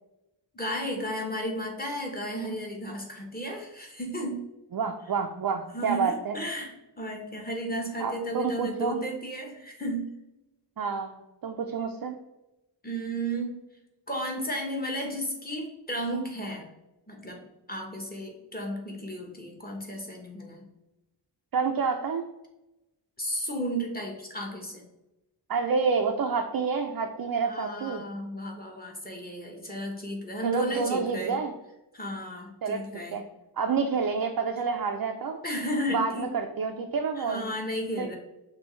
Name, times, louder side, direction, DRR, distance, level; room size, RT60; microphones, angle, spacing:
voice 1, 0.5-4.4 5.7-6.7 7.0-10.1 12.8-13.6 14.1-16.7 17.1-17.4 17.7-20.6 23.2-24.8 27.4-31.4 31.9-33.2 35.4-36.3 37.2-38.2, right 1 dB, 20° left, 0 dB, 1.0 m, -33 dB
voice 2, 4.7-6.4 8.0-9.0 10.8-12.2 21.5-22.3 25.5-28.0 30.4-31.5 32.6-32.8 33.1-33.2 33.6-35.4 35.9-37.5 38.0-38.2, right 5 dB, 55° right, 3 dB, 0.5 m, -28 dB
6.1 x 2.7 x 3.1 m, 0.97 s
wide cardioid pair, 85°, 44 cm